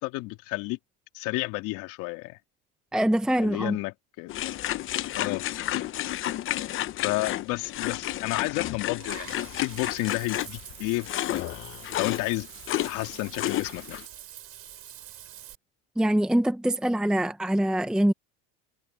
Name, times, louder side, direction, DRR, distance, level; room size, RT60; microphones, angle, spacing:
voice 1, 0.0-0.8 1.1-2.4 3.4-4.3 5.1-5.8 7.0-11.6 12.0-12.5 12.8-14.0, left 21 dB, 60° left, 3.4 m, -31 dB
voice 2, 2.9-3.8 16.0-18.1, right 1 dB, ahead, 0.9 m, -24 dB
sound 1, 4.3-14.0, left 13 dB, 35° left, 0.8 m, -31 dB
Water / Bathtub (filling or washing), 9.0-15.5, right 12 dB, 40° right, 5.9 m, -45 dB
supercardioid pair, 135°, 35 cm